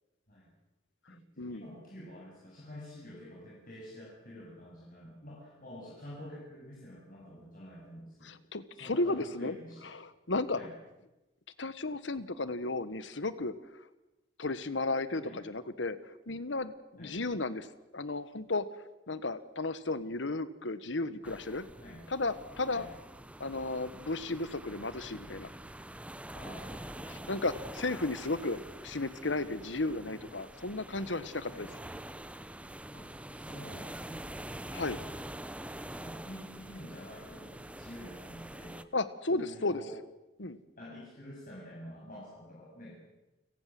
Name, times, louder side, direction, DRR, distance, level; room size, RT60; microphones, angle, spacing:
voice 1, 1.1-8.4 8.7-9.9 10.5-10.7 15.2-15.4 17.0-17.2 21.8-22.0 22.7-22.9 26.3-27.1 31.5-31.7 32.9-33.1 33.3-34.4 36.0-38.8 39.3-39.9 40.8-43.1, left 1 dB, 50° left, -5 dB, 7.7 m, -48 dB
voice 2, 8.2-9.5 9.8-10.6 11.6-13.5 14.4-16.0 16.3-17.7 17.9-18.7 19.1-21.7 22.1-22.9 23.4-25.5 27.1-28.6 28.8-31.7 34.7-35.0 38.9-39.8 40.4-40.6, left 2 dB, 80° left, 14 dB, 1.5 m, -34 dB
sound 1, 21.2-38.8, right 1 dB, 5° right, 0.8 m, -45 dB
29.5 x 18.0 x 7.7 m, 1.0 s
head